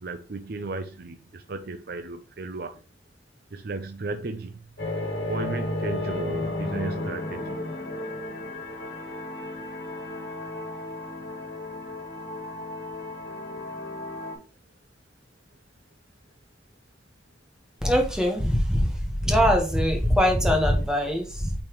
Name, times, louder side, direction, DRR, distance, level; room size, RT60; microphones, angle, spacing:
voice 1, 0.0-2.8 3.5-4.6 5.3-7.6, right 3 dB, 60° right, 0.5 m, -34 dB
sound 1, 4.8-14.3, left 1 dB, 65° left, 2.5 m, -33 dB
voice 2, 17.8-21.5, equal, 5° right, 1.4 m, -22 dB
8.6 x 4.2 x 3.1 m
head